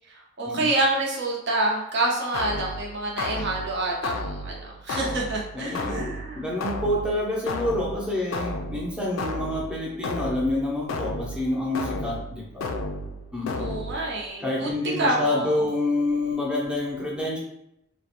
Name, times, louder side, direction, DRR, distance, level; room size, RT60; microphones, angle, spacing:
voice 1, 0.1-6.4 13.6-15.6, right 2 dB, 60° right, -1 dB, 0.6 m, -27 dB
sound 1, 2.3-14.3, left 2 dB, 80° left, 0.3 m, -33 dB
voice 2, 5.5-12.6 13.3-13.7 14.4-17.4, left 1 dB, 5° right, -4 dB, 0.6 m, -28 dB
2.4 x 2.1 x 2.8 m, 0.79 s
head